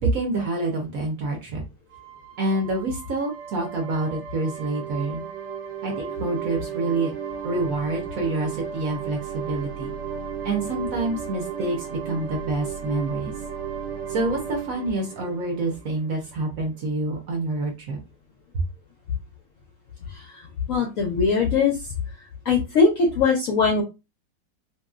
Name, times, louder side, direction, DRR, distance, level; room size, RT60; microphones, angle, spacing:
voice 1, 0.0-1.6 2.4-5.2 5.8-7.1 7.4-9.9 10.4-13.3 14.1-18.0, right 2 dB, 60° right, 1 dB, 1.0 m, -27 dB
sound 1, 1.9-16.3, right 7 dB, 80° right, 1.2 m, -34 dB
voice 2, 20.1-20.4 20.7-21.9 22.4-23.8, left 4 dB, 70° left, 1 dB, 0.8 m, -21 dB
2.9 x 2.8 x 2.3 m, 0.25 s
omnidirectional pair, 2.0 m